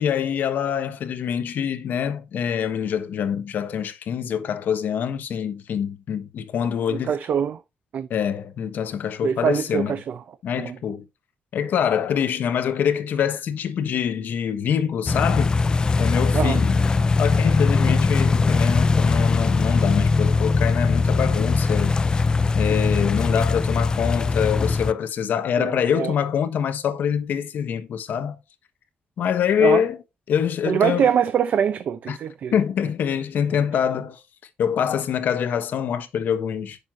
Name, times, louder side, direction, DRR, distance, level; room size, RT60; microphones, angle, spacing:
voice 1, 0.0-7.2 8.1-9.9 10.4-11.0 11.5-15.6 16.0-16.8 17.2-22.0 22.5-28.4 29.2-30.0 30.3-31.1 32.1-32.2 32.5-34.2 34.6-36.8, left 8 dB, 75° left, 1.2 m, -25 dB
voice 2, 6.9-7.6 7.9-8.1 9.2-10.2 10.6-10.8 16.3-16.6 25.6-26.1 29.6-29.8 30.6-32.5, right 8 dB, 60° right, 0.7 m, -23 dB
sound 1, 15.1-24.9, left 4 dB, 25° left, 0.4 m, -20 dB
9.0 x 6.7 x 2.8 m
wide cardioid pair, 160°, 3 cm